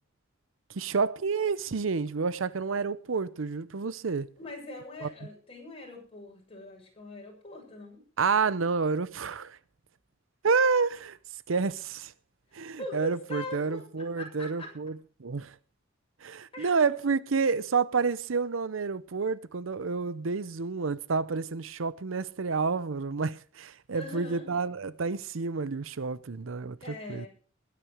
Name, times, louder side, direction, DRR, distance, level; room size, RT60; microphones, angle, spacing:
voice 1, 0.7-4.3 5.0-5.1 8.2-9.6 10.4-11.2 11.5-12.1 12.5-15.6 16.2-27.3, right 4 dB, 75° right, 0.7 m, -29 dB
voice 2, 4.4-8.0 12.8-14.7 16.5-16.8 23.9-24.5 26.8-27.3, left 2 dB, 30° left, 7.1 m, -42 dB
20.5 x 9.5 x 4.9 m
head